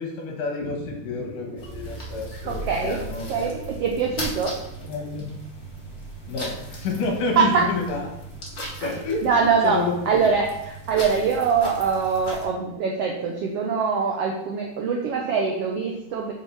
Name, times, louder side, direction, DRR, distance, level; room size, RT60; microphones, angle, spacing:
voice 1, 0.0-3.5 4.9-5.4 6.3-8.0 8.8-9.2 9.6-10.2, left 3 dB, 75° left, 1 dB, 2.9 m, -29 dB
sound 1, 1.6-12.5, right 1 dB, 30° left, 1.3 m, -37 dB
voice 2, 2.4-3.0 3.3-4.6 7.4-7.6 8.8-8.9 9.2-9.8 10.1-16.3, right 5 dB, 85° right, 0 dB, 1.3 m, -23 dB
6.8 x 4.4 x 5.6 m, 0.86 s
omnidirectional pair, 3.7 m